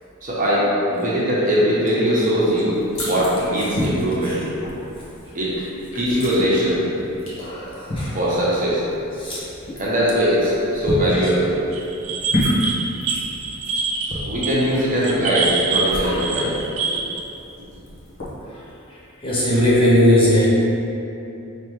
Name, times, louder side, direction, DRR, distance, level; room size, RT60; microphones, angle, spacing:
voice 1, 0.2-4.4 5.3-5.5 5.9-6.9 8.1-8.8 9.8-11.5 12.4-12.5 14.3-16.5 16.8-17.0, equal, 40° right, -7 dB, 0.9 m, -20 dB
sound 1, 2.4-18.3, equal, 65° left, 1.3 m, -31 dB
voice 2, 7.4-8.2 9.2-9.4 11.1-11.3 19.2-20.5, equal, 25° left, -7 dB, 0.7 m, -18 dB
sound 2, 11.7-17.2, right 4 dB, 75° right, 0.5 m, -25 dB
5.2 x 3.3 x 3.1 m, 2.9 s
head